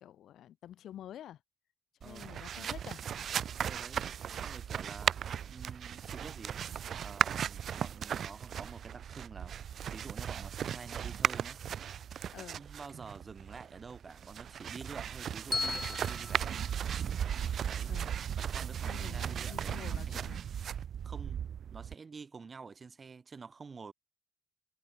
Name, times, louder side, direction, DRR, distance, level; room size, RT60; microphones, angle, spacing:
voice 1, 0.0-1.4 2.0-3.0 12.3-12.6 17.9-18.1 18.9-20.4, left 11 dB, 75° left, 3.8 m, -48 dB
voice 2, 2.0-2.8 3.6-4.1 4.3-5.2 5.5-6.6 7.0-9.6 9.9-11.6 12.1-16.6 17.6-18.0 18.4-20.3 21.0-23.9, right 5 dB, 35° right, 3.4 m, -49 dB
sound 1, 2.0-21.9, right 8 dB, 60° right, 1.8 m, -36 dB
Bell, 15.5-17.7, left 3 dB, 25° left, 2.8 m, -38 dB
cardioid pair, 90°, 0 cm